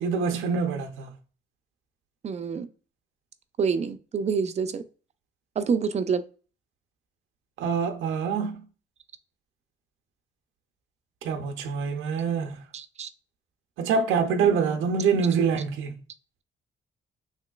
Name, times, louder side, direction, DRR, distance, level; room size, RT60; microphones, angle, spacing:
voice 1, 0.0-1.1 7.6-8.6 11.2-12.6 13.8-16.0, right 5 dB, 85° right, 0.5 m, -25 dB
voice 2, 2.2-2.7 3.6-4.8 5.6-6.2 12.7-13.1, right 5 dB, 35° right, 0.4 m, -27 dB
3.1 x 2.9 x 2.3 m
cardioid pair, 90°, 20 cm